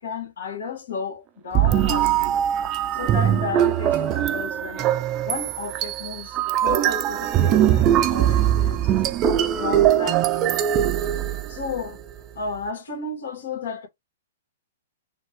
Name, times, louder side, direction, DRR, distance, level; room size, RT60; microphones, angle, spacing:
voice 1, 0.0-2.5 2.9-4.9 5.3-10.5 11.5-12.0 12.3-13.9, left 5 dB, 75° left, 2.0 m, -33 dB
sound 1, 1.5-11.8, right 11 dB, 30° right, 0.5 m, -21 dB
5.1 x 2.5 x 3.5 m
hypercardioid pair, 135°, 0 cm